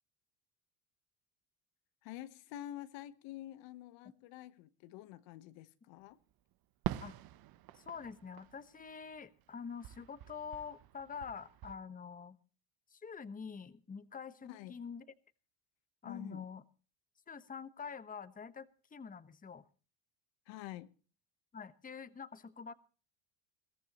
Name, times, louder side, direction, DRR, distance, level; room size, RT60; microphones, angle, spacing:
voice 1, 2.0-6.2 14.4-14.8 16.0-16.5 20.5-20.9, left 13 dB, 70° left, 1.2 m, -48 dB
Fireworks, 6.8-9.5 9.8-11.7, right 13 dB, 50° right, 0.9 m, -44 dB
voice 2, 7.7-12.4 12.9-15.0 16.0-16.6 17.3-19.6 21.5-22.7, left 6 dB, 20° left, 1.1 m, -46 dB
21.0 x 14.5 x 3.0 m
supercardioid pair, 105°, 46 cm